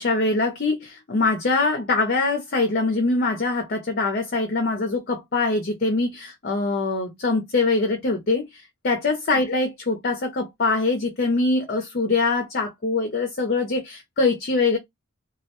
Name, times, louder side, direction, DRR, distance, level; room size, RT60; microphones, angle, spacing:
voice 1, 0.0-14.8, left 3 dB, 45° left, 0.6 m, -23 dB
2.3 x 2.1 x 2.8 m
head